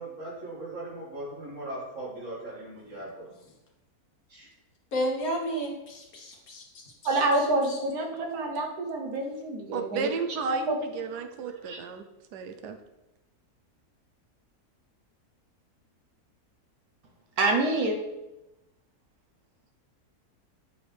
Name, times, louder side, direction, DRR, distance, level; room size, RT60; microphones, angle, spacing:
voice 1, 0.0-3.3 4.3-4.5, right 1 dB, 50° right, -5 dB, 2.4 m, -39 dB
voice 2, 4.9-6.8 7.7-7.8, equal, 65° left, 1 dB, 1.5 m, -32 dB
voice 3, 7.0-10.1 10.4-10.8 11.4-11.8 17.4-18.0, right 2 dB, 70° right, 2 dB, 1.4 m, -27 dB
voice 4, 9.7-12.0 12.3-12.8, right 6 dB, 85° right, 7 dB, 1.2 m, -34 dB
8.2 x 4.3 x 3.4 m, 0.96 s
omnidirectional pair, 1.7 m